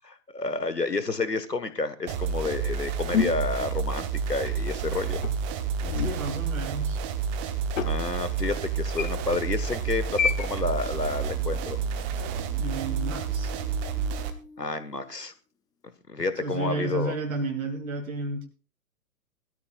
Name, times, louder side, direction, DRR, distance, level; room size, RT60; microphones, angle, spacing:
voice 1, 0.0-5.2 7.8-11.8 14.6-15.3 16.1-17.2, left 3 dB, 90° left, 12 dB, 1.6 m, -30 dB
sound 1, 2.1-14.3, right 6 dB, 20° right, 1.0 m, -30 dB
sound 2, 3.1-4.4 5.2-6.3 7.8-7.9 9.0-9.4 10.2-10.5, left 6 dB, 55° left, 1.2 m, -28 dB
voice 2, 5.9-7.0 12.6-13.5 16.4-18.5, right 3 dB, 60° right, 3 dB, 2.8 m, -32 dB
Human voice, 10.4-15.3, left 3 dB, 10° left, 0.9 m, -49 dB
20.5 x 13.0 x 2.4 m, 0.35 s
figure-of-eight pair, 120°, 47 cm